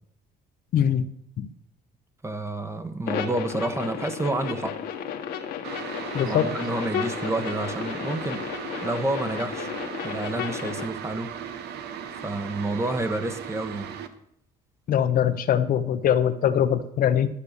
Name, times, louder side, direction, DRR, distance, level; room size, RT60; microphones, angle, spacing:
voice 1, 0.7-1.1 1.4-1.5 6.1-6.5 14.9-17.3, left 9 dB, 55° left, 0.8 m, -22 dB
voice 2, 2.2-4.8 6.1-8.4 8.8-9.7 10.0-11.3 12.1-14.0, right 2 dB, 15° right, 1.1 m, -29 dB
sound 1, 3.1-10.9, left 8 dB, 75° left, 1.5 m, -33 dB
sound 2, 5.6-14.1, right 8 dB, 75° right, 1.1 m, -37 dB
12.0 x 6.9 x 6.6 m
cardioid pair, 110°, 17 cm